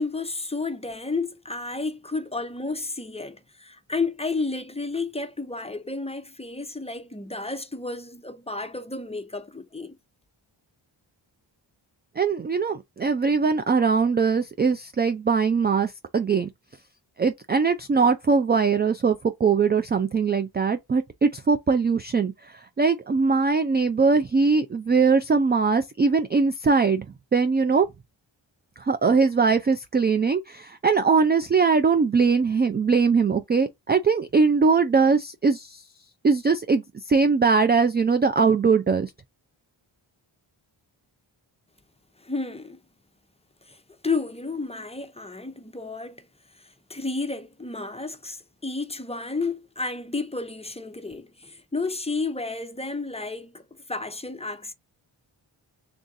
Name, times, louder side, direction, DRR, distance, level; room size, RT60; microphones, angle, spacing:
voice 1, 0.0-10.0 42.2-42.8 43.7-46.3 46.6-54.7, left 3 dB, 15° left, 0.7 m, -32 dB
voice 2, 12.2-16.5 17.2-27.1 27.3-27.9 28.8-35.8 36.2-39.1, right 5 dB, 25° right, 0.3 m, -21 dB
3.6 x 2.5 x 3.9 m
cardioid pair, 55°, 47 cm